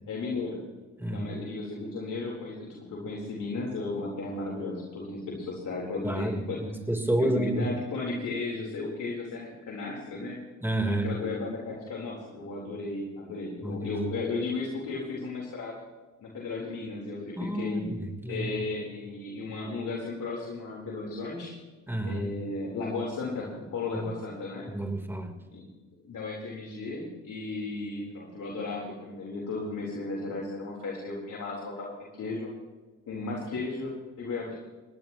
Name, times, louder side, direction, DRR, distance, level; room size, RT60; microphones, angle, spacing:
voice 1, 0.1-0.6 1.1-6.6 7.2-10.4 10.8-15.8 16.2-17.8 18.3-21.5 22.0-24.7 25.5-25.7 26.0-32.5 33.1-33.9 34.2-34.6, left 3 dB, 70° left, -3 dB, 4.0 m, -35 dB
voice 2, 1.0-1.3 6.0-7.7 10.6-11.2 13.6-14.0 17.4-18.6 21.9-22.3 23.9-24.1 24.7-25.3, right 1 dB, 5° right, 3 dB, 3.6 m, -30 dB
22.0 x 17.5 x 3.0 m, 1.2 s
supercardioid pair, 60°, 33 cm